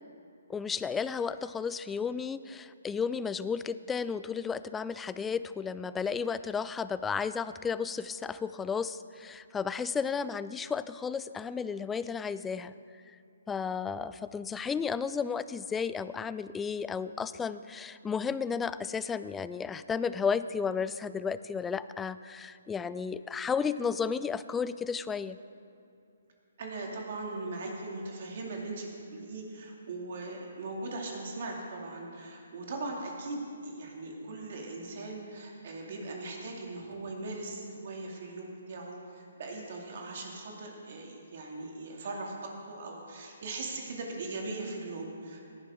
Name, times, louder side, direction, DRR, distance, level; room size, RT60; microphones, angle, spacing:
voice 1, 0.5-12.7 13.5-25.4, left 6 dB, 10° left, 14 dB, 0.3 m, -33 dB
voice 2, 26.6-45.5, right 2 dB, 55° right, 0 dB, 2.4 m, -39 dB
18.0 x 11.0 x 3.7 m, 2.6 s
hypercardioid pair, 140°, 0 cm